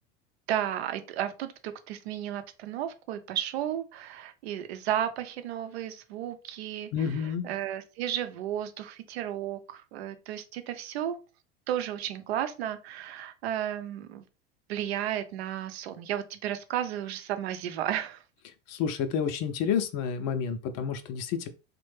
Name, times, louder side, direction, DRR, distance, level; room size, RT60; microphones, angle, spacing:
voice 1, 0.5-11.2 11.7-14.2 14.7-18.2, right 11 dB, 70° right, 9 dB, 0.6 m, -33 dB
voice 2, 6.9-7.5 18.7-21.5, left 7 dB, 50° left, 9 dB, 0.6 m, -29 dB
3.3 x 2.2 x 3.1 m, 0.32 s
hypercardioid pair, 85°, 33 cm